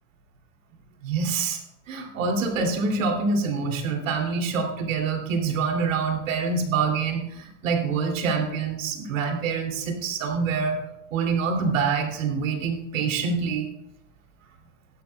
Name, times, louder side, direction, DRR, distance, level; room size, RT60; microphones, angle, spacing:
voice 1, 1.0-1.6 1.9-10.8 11.1-13.7, right 5 dB, 85° right, 3 dB, 2.8 m, -26 dB
17.0 x 11.5 x 2.3 m, 0.82 s
hypercardioid pair, 110°, 38 cm